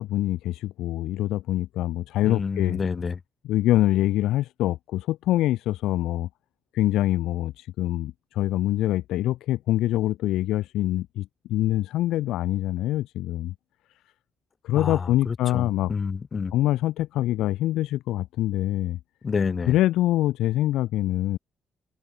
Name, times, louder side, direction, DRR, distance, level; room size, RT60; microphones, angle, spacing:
voice 1, 0.0-2.8 3.5-6.3 6.7-13.5 14.6-15.9 16.5-19.0 19.7-21.4, left 15 dB, 90° left, 1.0 m, -25 dB
voice 2, 2.2-3.2 14.7-16.5 19.2-19.8, left 5 dB, 40° left, 3.6 m, -29 dB
cardioid pair, 90°, 0 cm